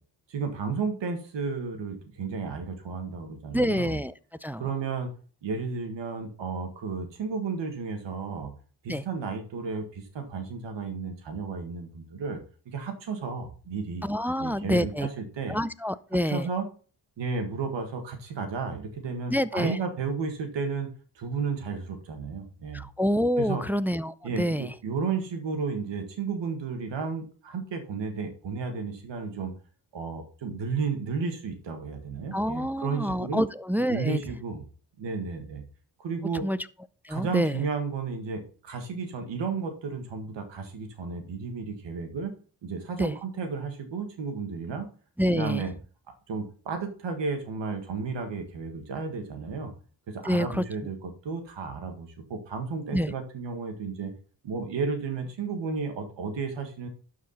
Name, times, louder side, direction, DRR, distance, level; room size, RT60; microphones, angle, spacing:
voice 1, 0.3-4.0 4.6-5.1 5.4-8.5 8.8-14.1 14.4-15.6 16.3-16.7 17.2-20.9 21.2-22.8 23.4-23.6 24.2-29.5 29.9-33.4 33.9-34.6 35.0-35.6 36.0-36.5 37.1-42.3 42.6-44.9 45.3-45.7 46.3-49.7 50.1-54.1 54.4-56.9, right 5 dB, 80° right, 1.9 m, -33 dB
voice 2, 3.5-4.1 4.4-4.7 8.9-9.0 14.0-15.1 15.5-16.5 19.3-19.8 22.7-24.7 32.3-34.2 36.4-36.6 37.0-37.6 43.0-43.1 45.2-45.6 50.2-50.6 52.9-53.1, equal, 5° right, 0.4 m, -27 dB
11.5 x 4.9 x 4.1 m
supercardioid pair, 50°, 44 cm